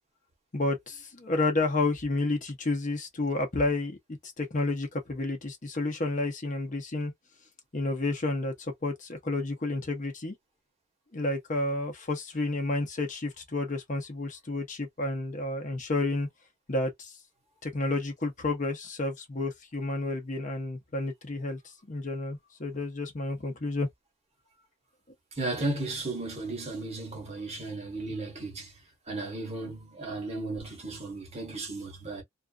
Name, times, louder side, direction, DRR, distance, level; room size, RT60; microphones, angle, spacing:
voice 1, 0.5-4.0 4.2-7.1 7.7-10.3 11.1-16.3 16.7-17.1 17.6-21.6 21.9-23.9, left 2 dB, 40° left, 0.7 m, -30 dB
voice 2, 25.4-28.7 29.1-32.2, right 2 dB, 30° right, 1.1 m, -35 dB
2.5 x 2.3 x 2.3 m
head